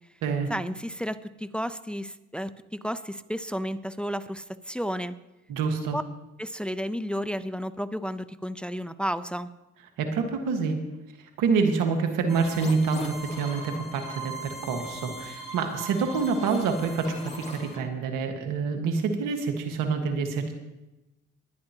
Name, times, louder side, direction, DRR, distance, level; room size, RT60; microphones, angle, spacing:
voice 1, 0.5-5.1 5.9-6.0 6.4-9.5, equal, 5° left, 12 dB, 0.7 m, -32 dB
voice 2, 5.5-6.0 10.0-10.8 11.4-20.5, right 5 dB, 90° right, 4 dB, 1.7 m, -27 dB
sound 1, 12.3-17.8, right 1 dB, 20° left, 3.3 m, -40 dB
21.5 x 10.0 x 3.0 m, 0.99 s
supercardioid pair, 60°, 31 cm